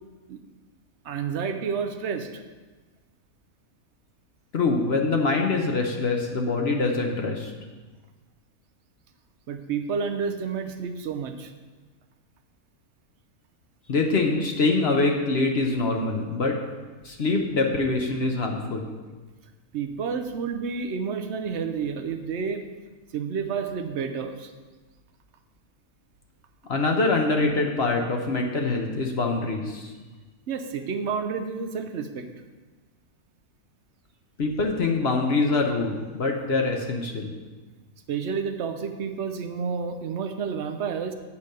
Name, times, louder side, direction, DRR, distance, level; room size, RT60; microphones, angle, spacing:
voice 1, 1.0-2.3 9.5-11.5 19.7-22.6 23.1-24.5 30.5-32.3 38.1-41.1, right 6 dB, 60° right, 7 dB, 0.9 m, -30 dB
voice 2, 4.5-7.5 13.9-16.6 17.0-18.9 26.7-29.9 34.4-37.3, left 3 dB, 50° left, 2 dB, 1.0 m, -24 dB
8.3 x 5.1 x 6.7 m, 1.3 s
omnidirectional pair, 1.5 m